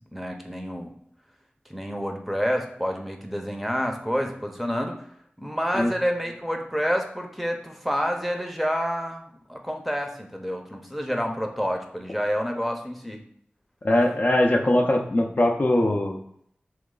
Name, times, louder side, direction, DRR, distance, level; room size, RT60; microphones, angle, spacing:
voice 1, 0.1-0.9 1.7-5.0 5.4-13.2, equal, ahead, 3 dB, 0.6 m, -28 dB
voice 2, 13.8-16.2, left 1 dB, 50° left, 2 dB, 0.5 m, -21 dB
3.1 x 3.0 x 3.7 m, 0.68 s
cardioid pair, 40°, 4 cm